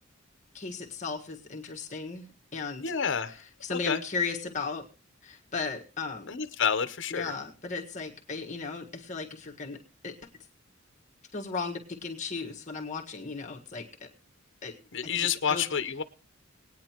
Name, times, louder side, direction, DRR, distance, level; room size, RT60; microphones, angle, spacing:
voice 1, 0.5-2.2 2.5-2.9 3.6-4.8 5.2-6.3 7.1-9.8 10.0-10.1 11.3-14.1 14.6-14.7 15.0-15.7, left 4 dB, 35° left, 0 dB, 1.5 m, -36 dB
voice 2, 2.8-3.4 3.7-4.0 6.3-7.3 14.9-16.0, left 7 dB, 65° left, 10 dB, 0.8 m, -29 dB
21.5 x 9.3 x 3.0 m, 0.36 s
head